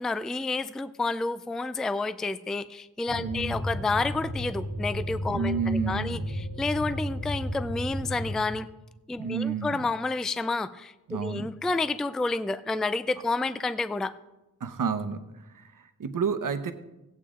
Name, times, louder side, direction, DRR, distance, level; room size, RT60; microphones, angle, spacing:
voice 1, 0.0-8.7 9.1-14.1, left 3 dB, ahead, 13 dB, 0.3 m, -30 dB
sound 1, 3.1-8.4, equal, 40° left, 1.7 m, -33 dB
voice 2, 3.2-3.6 5.3-6.3 9.2-9.8 11.1-11.5 14.6-15.2 15.5-16.7, right 5 dB, 70° right, 9 dB, 0.9 m, -30 dB
17.0 x 8.4 x 3.7 m, 0.98 s
wide cardioid pair, 100°, 34 cm